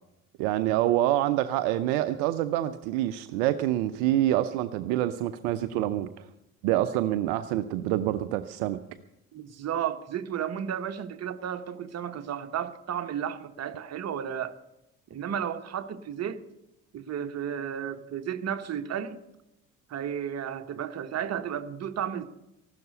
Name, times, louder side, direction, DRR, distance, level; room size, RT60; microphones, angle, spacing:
voice 1, 0.4-6.3 6.6-8.8, right 13 dB, 60° right, 0.7 m, -26 dB
voice 2, 9.3-14.6 15.1-16.4 16.9-19.2 19.9-22.2, right 9 dB, 40° right, 1.3 m, -33 dB
15.0 x 12.0 x 6.7 m
figure-of-eight pair, 55°, 42 cm